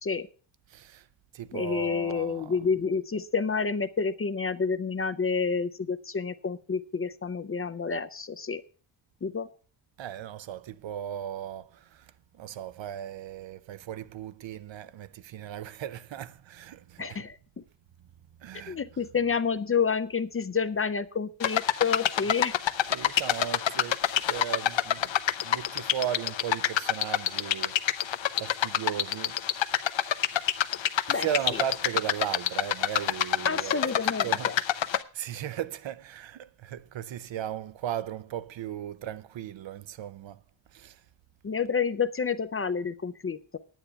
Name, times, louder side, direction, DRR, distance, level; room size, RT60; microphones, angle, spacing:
voice 1, 0.7-1.1 1.3-2.6 10.0-12.1 12.4-17.2 18.4-18.8 22.9-24.0 24.3-25.1 25.4-29.4 31.2-33.8 34.2-40.4 40.7-41.0, right 10 dB, 70° right, 0.7 m, -36 dB
voice 2, 1.5-8.6 9.2-9.5 17.0-17.4 18.5-22.6 31.1-31.6 33.5-34.5 41.4-43.6, left 5 dB, 30° left, 0.4 m, -29 dB
sound 1, 21.4-35.0, left 11 dB, 70° left, 0.8 m, -27 dB
9.9 x 9.2 x 5.7 m
wide cardioid pair, 165°, 47 cm